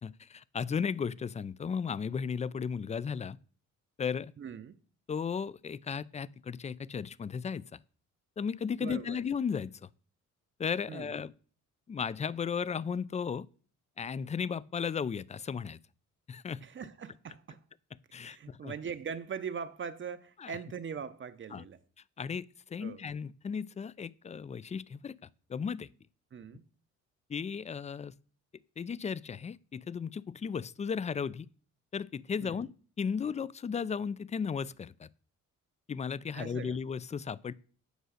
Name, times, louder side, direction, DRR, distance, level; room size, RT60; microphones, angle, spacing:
voice 1, 0.0-3.4 4.0-4.3 5.1-7.8 8.4-9.9 10.6-11.3 11.9-13.5 14.0-15.8 16.3-16.6 18.1-18.7 20.4-20.5 21.5-21.6 22.2-25.2 25.5-25.9 27.3-28.1 28.8-31.5 31.9-35.1 35.9-37.5, left 6 dB, 25° left, 0.4 m, -35 dB
voice 2, 4.4-4.8 8.8-9.2 10.9-11.1 16.6-17.6 18.2-21.8 22.8-23.0 26.3-26.7 32.4-32.6 36.3-36.8, right 6 dB, 40° right, 0.7 m, -41 dB
8.1 x 6.3 x 6.3 m
cardioid pair, 90°, 30 cm